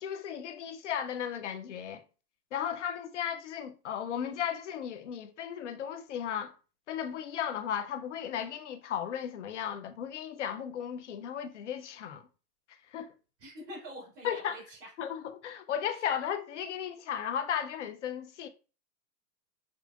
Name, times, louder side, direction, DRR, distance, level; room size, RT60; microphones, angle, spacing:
voice 1, 0.0-2.0 2.5-6.5 6.9-12.2 12.9-13.1 14.2-14.6 15.0-18.5, left 9 dB, 50° left, 0.5 m, -35 dB
voice 2, 13.4-14.9, equal, 45° right, 2.0 m, -45 dB
5.1 x 2.1 x 2.3 m
hypercardioid pair, 160°, 49 cm